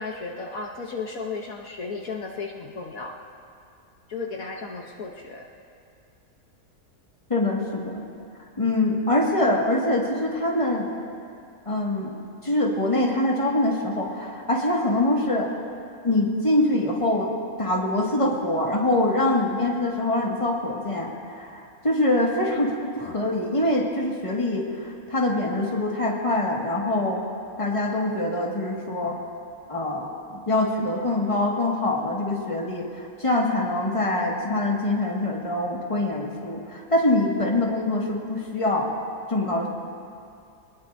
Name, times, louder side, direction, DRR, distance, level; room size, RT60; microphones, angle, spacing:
voice 1, 0.0-3.2 4.1-5.4, left 4 dB, 70° left, 1 dB, 1.4 m, -34 dB
voice 2, 7.3-8.0 8.6-10.9 11.7-12.1 12.4-15.5 16.0-27.2 27.6-29.2 29.7-38.9 39.3-39.7, left 1 dB, 20° left, -2 dB, 2.0 m, -24 dB
24.5 x 20.0 x 2.7 m, 2.4 s
omnidirectional pair, 1.6 m